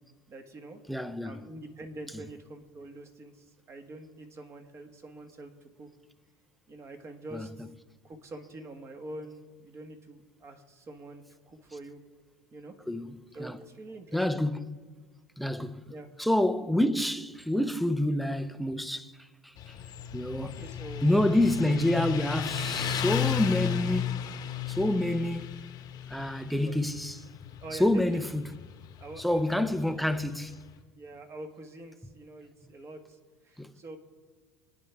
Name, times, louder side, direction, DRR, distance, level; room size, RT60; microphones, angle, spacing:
voice 1, 0.3-0.8 1.2-5.5 5.8-5.9 6.7-7.6 8.0-12.0 12.5-12.7 13.3-14.4 15.9-16.1 20.4-21.1 26.7-26.8 27.6-28.2 29.0-29.7 30.0-30.2 30.9-33.2 33.4-34.0, right 2 dB, 30° right, 1.6 m, -45 dB
voice 2, 0.9-1.4 7.3-7.5 12.9-13.6 14.1-14.8 15.4-15.8 16.2-19.1 19.4-19.7 20.1-20.6 21.0-24.2 24.7-25.6 26.1-27.3 27.7-28.6 29.2-30.5 33.6-33.7, left 1 dB, ahead, 0.6 m, -28 dB
Motorcycle, 19.6-30.7, left 10 dB, 45° left, 1.0 m, -34 dB
24.0 x 9.3 x 3.5 m
supercardioid pair, 110°, 9 cm